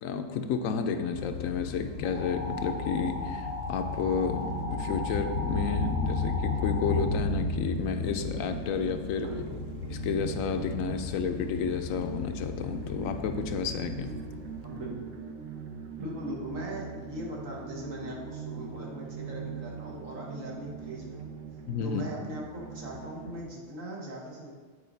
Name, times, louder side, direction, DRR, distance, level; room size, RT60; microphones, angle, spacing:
voice 1, 0.0-9.3 9.9-14.1 21.7-22.0, left 6 dB, 80° left, 7 dB, 1.0 m, -31 dB
sound 1, 1.1-15.0, left 5 dB, 65° left, 0.7 m, -35 dB
sound 2, 2.0-7.1, left 1 dB, 15° right, 0.4 m, -38 dB
sound 3, 4.4-23.4, right 6 dB, 60° right, 0.9 m, -42 dB
voice 2, 9.2-9.6 14.6-15.1 16.0-21.3 21.8-24.5, right 1 dB, 75° right, -2 dB, 1.8 m, -39 dB
8.7 x 4.9 x 4.0 m, 1.5 s
omnidirectional pair, 1.4 m